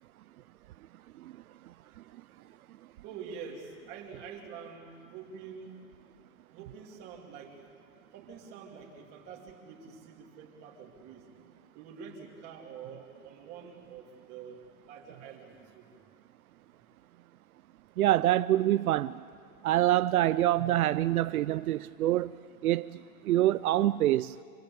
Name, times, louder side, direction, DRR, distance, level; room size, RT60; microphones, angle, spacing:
voice 1, 3.0-5.8 6.5-7.6 8.1-11.3 11.7-15.9, right 6 dB, 20° right, -1 dB, 2.9 m, -46 dB
voice 2, 18.0-19.1 19.6-22.3 22.6-23.0 23.3-24.3, right 14 dB, 75° right, 14 dB, 0.6 m, -25 dB
27.0 x 21.5 x 8.5 m, 2.3 s
supercardioid pair, 180°, 43 cm